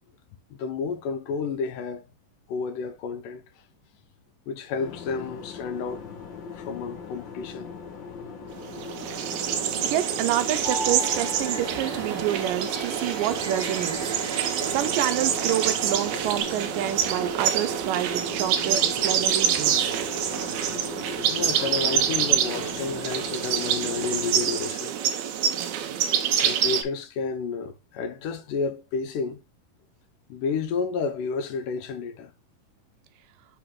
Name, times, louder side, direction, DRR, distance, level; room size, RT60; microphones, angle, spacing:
voice 1, 0.5-2.0 2.5-3.4 4.5-6.1 6.5-7.7 20.3-20.5 21.3-24.9 26.4-29.4 30.3-32.3, left 5 dB, 80° left, 2.5 m, -31 dB
sound 1, 4.8-24.7, left 6 dB, 55° left, 1.3 m, -40 dB
sound 2, 8.6-26.8, right 9 dB, 70° right, 2.0 m, -26 dB
voice 2, 9.8-14.1 14.7-19.9, right 12 dB, 90° right, 2.3 m, -28 dB
sound 3, 10.6-16.4, left 1 dB, 20° left, 1.3 m, -39 dB
5.8 x 4.6 x 3.7 m
omnidirectional pair, 3.8 m